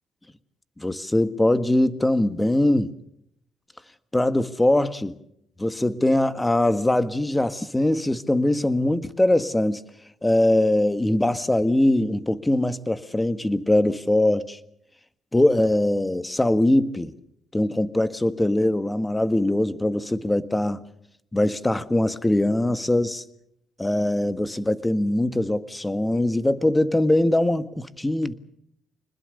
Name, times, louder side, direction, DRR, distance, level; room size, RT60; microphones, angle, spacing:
voice 1, 0.8-2.9 4.1-5.1 5.6-9.8 10.2-14.6 15.3-17.1 17.5-20.8 21.3-23.2 23.8-28.3, left 1 dB, 10° left, 1.6 m, -22 dB
26.0 x 20.5 x 6.7 m
cardioid pair, 90°, 0 cm